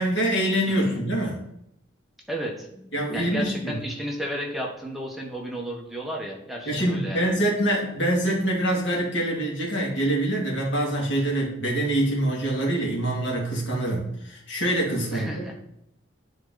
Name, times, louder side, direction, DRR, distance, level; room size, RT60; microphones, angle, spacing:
voice 1, 0.0-1.4 2.9-3.8 6.7-15.5, right 1 dB, 70° left, -3 dB, 2.5 m, -25 dB
voice 2, 0.7-1.0 2.3-7.3 15.1-15.5, equal, ahead, -2 dB, 1.2 m, -33 dB
9.9 x 3.9 x 4.0 m, 0.76 s
head